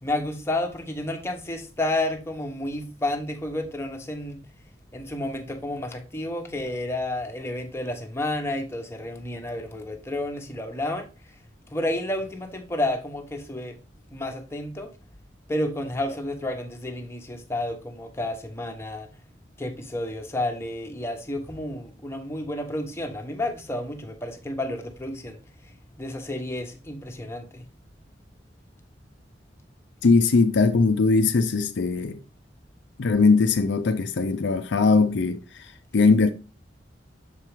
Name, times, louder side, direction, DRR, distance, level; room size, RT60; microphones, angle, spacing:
voice 1, 0.0-4.4 4.9-11.1 11.7-13.8 14.1-14.9 15.5-19.1 19.6-27.6, left 1 dB, 15° left, 1.0 m, -31 dB
voice 2, 30.0-32.2 33.0-35.7 35.9-36.3, left 4 dB, 70° left, 0.5 m, -20 dB
6.8 x 4.6 x 3.4 m
head